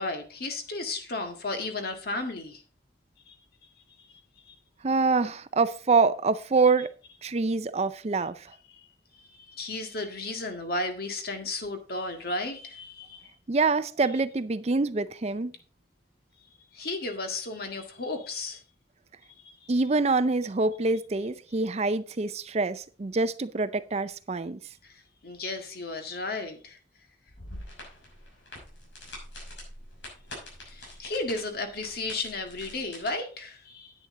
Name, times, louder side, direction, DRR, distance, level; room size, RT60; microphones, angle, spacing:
voice 1, 0.0-2.6 3.3-3.4 4.5-4.6 9.5-13.3 16.7-18.6 24.8-24.9 25.2-26.8 30.7-33.9, left 2 dB, 55° left, 1.8 m, -34 dB
voice 2, 4.8-6.9 7.2-8.5 13.5-15.5 19.7-24.6, right 3 dB, 35° right, 0.5 m, -25 dB
sound 1, 27.3-33.1, left 1 dB, 85° left, 5.9 m, -45 dB
10.0 x 9.2 x 3.8 m
head